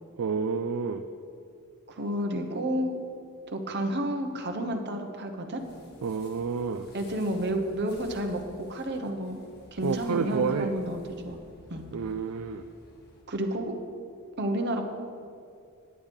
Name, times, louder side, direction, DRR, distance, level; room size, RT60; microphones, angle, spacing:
voice 1, 0.2-1.0 6.0-6.9 9.8-10.7 11.9-12.6, right 5 dB, 65° right, 8 dB, 0.4 m, -29 dB
voice 2, 1.9-2.9 3.5-5.6 6.9-8.4 8.7-9.4 9.7-11.4 11.7-11.8 13.3-13.8 14.4-14.9, right 1 dB, 50° right, 4 dB, 1.0 m, -30 dB
sound 1, 5.6-13.2, left 1 dB, 45° left, 1.5 m, -54 dB
9.8 x 8.7 x 5.4 m, 2.4 s
head